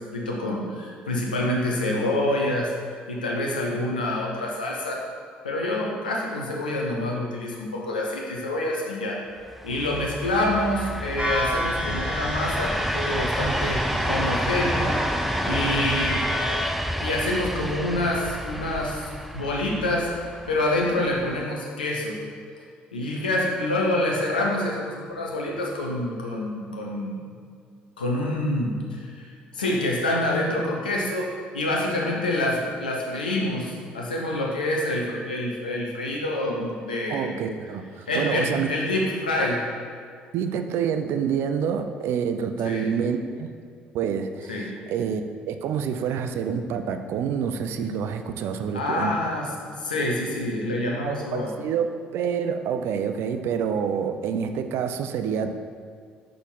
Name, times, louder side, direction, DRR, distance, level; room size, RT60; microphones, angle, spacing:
voice 1, 0.0-2.7 3.1-5.0 5.4-9.2 9.6-15.0 15.4-16.2 17.0-22.2 22.9-27.1 28.0-37.4 38.1-39.6 42.6-42.9 44.5-44.7 48.7-49.5 49.8-51.5, left 1 dB, 85° left, -2 dB, 0.9 m, -27 dB
sound 1, 9.5-21.4, equal, ahead, 0.4 m, -29 dB
sound 2, 11.2-16.6, left 1 dB, 20° right, 1.7 m, -31 dB
voice 2, 37.1-38.7 40.3-43.5 43.9-45.2 45.5-49.2 50.9-55.5, right 7 dB, 60° right, 8 dB, 0.4 m, -27 dB
6.2 x 3.7 x 5.4 m, 2.2 s
figure-of-eight pair, 50°, 5 cm